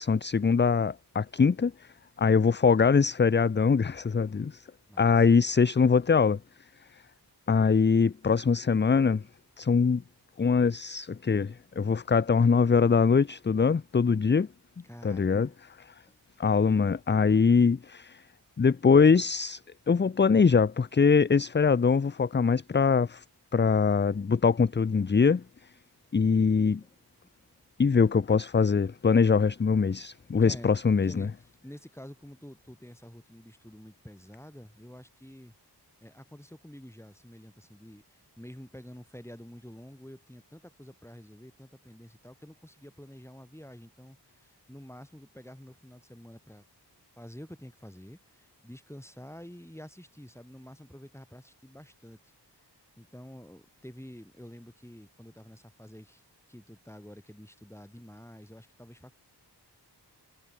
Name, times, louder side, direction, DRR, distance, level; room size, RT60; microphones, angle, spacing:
voice 1, 0.0-1.9 2.2-4.6 5.0-6.4 7.5-9.2 9.6-10.0 10.4-14.5 15.0-15.5 16.4-18.2 18.6-19.6 19.9-23.2 23.5-25.4 26.1-26.8 27.8-31.3, left 5 dB, 30° left, 0.4 m, -23 dB
voice 2, 4.9-5.3 14.8-15.5 16.1-16.2 26.8-27.0 27.4-27.5 30.2-30.7 31.0-35.5 36.0-38.0 38.4-46.6 47.1-52.3 53.0-56.2 56.5-59.1, equal, 5° left, 4.3 m, -48 dB
wide cardioid pair, 65°, 41 cm